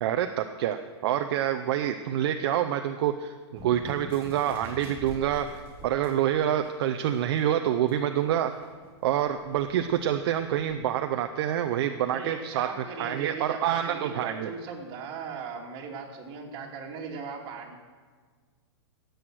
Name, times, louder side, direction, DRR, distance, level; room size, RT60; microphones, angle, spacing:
voice 1, 0.0-5.5 5.8-8.5 9.0-12.7 13.0-14.5, right 10 dB, 55° right, 7 dB, 0.7 m, -27 dB
sound 1, 3.5-6.2 6.6-6.7 7.2-10.7, equal, 15° right, 4.9 m, -46 dB
voice 2, 12.1-17.8, right 5 dB, 35° right, -1 dB, 2.6 m, -38 dB
16.5 x 8.0 x 6.2 m, 1.5 s
hypercardioid pair, 135°, 15 cm